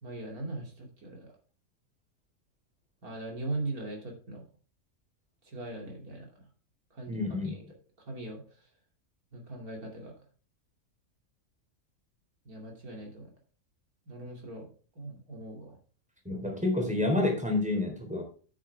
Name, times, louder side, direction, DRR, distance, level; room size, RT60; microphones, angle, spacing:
voice 1, 0.0-1.3 3.0-4.4 5.4-6.3 6.9-7.6 8.0-8.4 9.3-10.1 12.4-13.3 14.1-14.7 14.9-15.8, right 2 dB, 90° right, 1 dB, 3.3 m, -40 dB
voice 2, 7.1-7.5 16.3-18.2, left 2 dB, 5° right, 2 dB, 3.9 m, -29 dB
9.8 x 9.0 x 3.5 m, 0.39 s
omnidirectional pair, 1.5 m